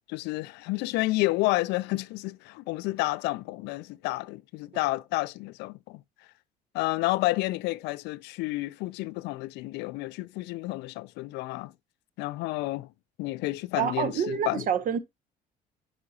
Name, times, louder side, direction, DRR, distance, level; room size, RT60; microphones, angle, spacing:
voice 1, 0.1-6.0 6.7-11.7 12.2-12.9 13.2-14.7, left 20 dB, 90° left, 0.4 m, -30 dB
voice 2, 13.8-15.0, right 8 dB, 55° right, 0.8 m, -27 dB
9.7 x 5.0 x 2.8 m
cardioid pair, 110°, 17 cm